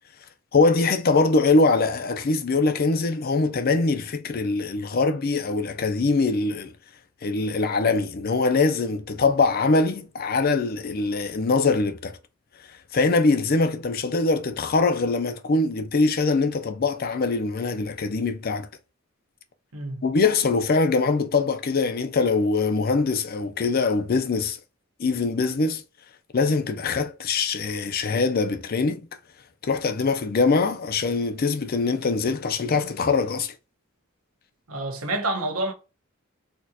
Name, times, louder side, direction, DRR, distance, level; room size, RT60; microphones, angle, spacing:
voice 1, 0.5-6.7 7.2-12.2 12.9-18.7 20.0-24.6 25.0-25.8 26.3-29.1 29.6-33.5, left 3 dB, 45° left, 0.5 m, -23 dB
voice 2, 19.7-20.1 34.7-35.7, right 2 dB, 90° right, 1.1 m, -28 dB
4.3 x 2.8 x 2.3 m
head